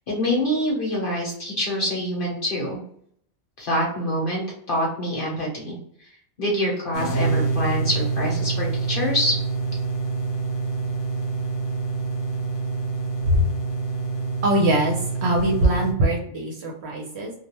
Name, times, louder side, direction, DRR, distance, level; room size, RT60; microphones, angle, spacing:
voice 1, 0.0-2.8 3.6-5.8 6.4-9.4, equal, 50° left, -3 dB, 0.8 m, -25 dB
sound 1, 6.9-15.9, right 4 dB, 80° left, 1.0 m, -26 dB
voice 2, 14.4-17.3, right 1 dB, 60° right, -1 dB, 0.8 m, -22 dB
2.3 x 2.1 x 2.9 m, 0.66 s
omnidirectional pair, 1.4 m